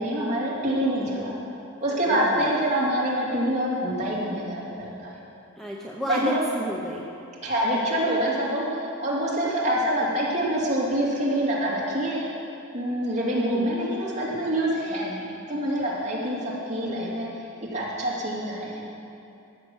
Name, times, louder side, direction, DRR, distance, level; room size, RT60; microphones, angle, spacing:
voice 1, 0.0-1.3 1.8-5.1 6.1-6.4 7.4-12.2 12.7-17.5 17.7-18.8, right 1 dB, 35° right, -6 dB, 2.6 m, -26 dB
voice 2, 2.1-2.5 5.6-7.1 13.3-13.7, equal, ahead, -3 dB, 0.8 m, -31 dB
14.5 x 6.8 x 6.4 m, 2.6 s
head